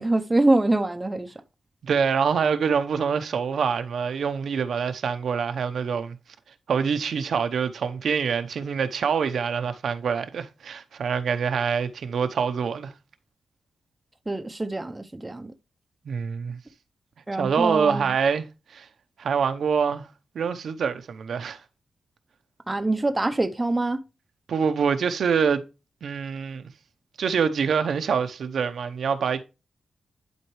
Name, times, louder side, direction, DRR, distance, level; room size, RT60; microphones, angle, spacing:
voice 1, 0.0-1.3 14.3-15.5 17.3-18.1 22.7-24.0, right 2 dB, 15° right, 0.6 m, -24 dB
voice 2, 1.8-6.2 6.7-12.9 16.1-16.6 17.4-18.4 18.7-18.9 19.2-20.1 20.3-21.6 24.5-25.6 26.0-26.6 27.2-29.4, right 6 dB, 65° right, 0.8 m, -25 dB
11.0 x 4.4 x 3.1 m
wide cardioid pair, 160°, 0 cm